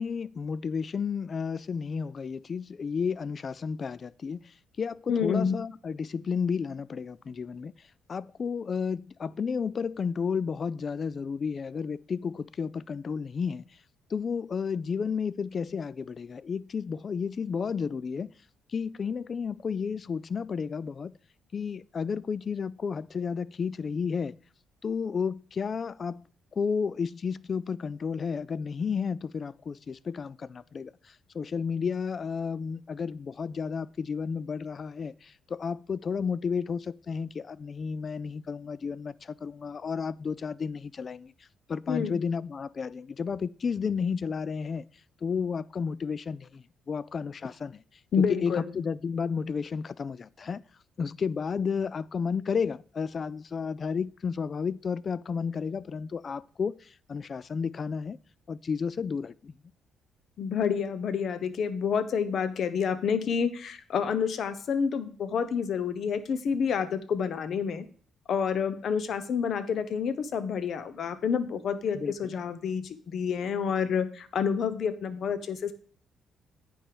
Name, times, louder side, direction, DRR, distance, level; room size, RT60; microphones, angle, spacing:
voice 1, 0.0-4.4 4.8-7.7 8.1-13.6 14.1-18.3 18.7-21.1 21.5-24.4 24.8-26.2 26.6-30.9 31.3-41.3 41.7-44.8 45.2-47.8 48.2-50.6 51.0-58.2 58.5-59.5 71.9-72.3, left 6 dB, 45° left, 0.3 m, -32 dB
voice 2, 5.1-5.6 41.9-42.1 48.1-48.7 60.4-67.9 68.3-75.7, left 6 dB, 60° left, 0.8 m, -28 dB
9.2 x 5.4 x 4.7 m
cardioid pair, 90°, 0 cm